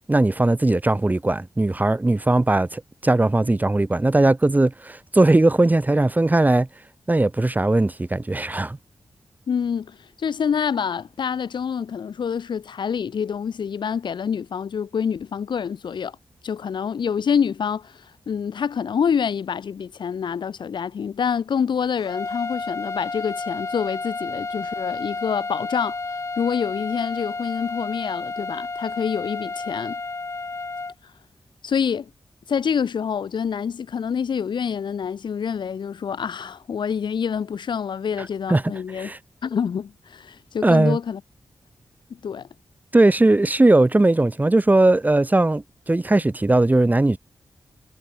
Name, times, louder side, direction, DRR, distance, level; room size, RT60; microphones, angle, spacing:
voice 1, 0.1-6.7 7.1-8.8 38.5-38.6 39.0-39.2 40.6-41.0 42.9-47.2, right 2 dB, 20° right, 1.3 m, -19 dB
voice 2, 9.5-16.2 16.4-26.0 26.4-30.0 31.6-32.1 32.5-39.1 39.4-41.2 42.1-42.5, left 7 dB, 85° left, 6.7 m, -26 dB
sound 1, 22.0-30.9, left 3 dB, 40° left, 2.8 m, -31 dB
cardioid pair, 75°, 8 cm